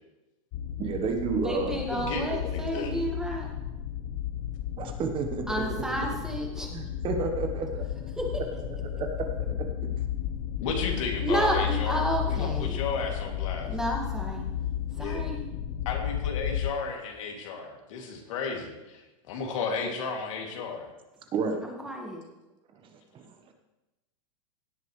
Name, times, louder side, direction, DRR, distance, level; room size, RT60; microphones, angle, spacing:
sound 1, 0.5-16.7, left 10 dB, 50° left, 0.9 m, -33 dB
voice 1, 0.8-1.8 4.8-5.6 6.7-7.8 8.9-9.7 10.6-10.7 21.3-21.6 23.1-23.3, right 5 dB, 30° right, 5 dB, 1.2 m, -31 dB
voice 2, 1.4-3.5 5.5-6.7 8.1-8.4 11.2-12.8 13.6-14.5 14.9-15.5 21.6-22.2, right 1 dB, 5° right, -1 dB, 2.0 m, -31 dB
voice 3, 1.9-2.9 10.6-12.0 12.3-13.7 14.9-15.2 15.8-20.9, left 4 dB, 70° left, 1 dB, 2.6 m, -33 dB
17.0 x 9.2 x 3.2 m, 1.0 s
supercardioid pair, 130°, 17 cm